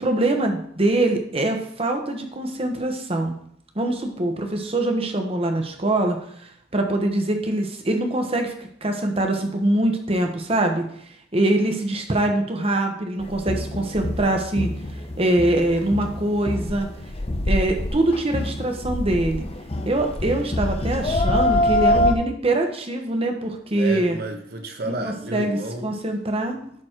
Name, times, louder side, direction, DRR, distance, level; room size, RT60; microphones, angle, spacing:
voice 1, 0.0-3.3 3.7-10.8 11.3-14.7 15.2-16.9 17.4-19.5 19.9-24.2 25.0-26.6, right 1 dB, 30° right, 4 dB, 1.2 m, -23 dB
sound 1, 13.2-22.1, left 1 dB, 35° left, 0.7 m, -25 dB
voice 2, 23.7-25.9 26.7-26.8, right 1 dB, 55° right, 4 dB, 1.3 m, -32 dB
11.0 x 4.3 x 4.5 m, 0.67 s
head